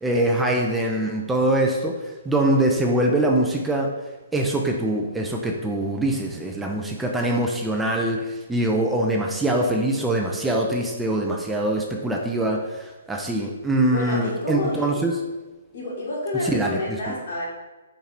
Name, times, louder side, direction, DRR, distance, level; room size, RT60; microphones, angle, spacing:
voice 1, 0.0-3.9 4.3-15.1 16.4-16.8, right 1 dB, 5° right, 0 dB, 0.4 m, -23 dB
voice 2, 13.9-15.0 15.7-17.5, left 2 dB, 55° left, -3 dB, 1.5 m, -29 dB
3.9 x 2.9 x 4.2 m, 1.2 s
figure-of-eight pair, 130°, 0 cm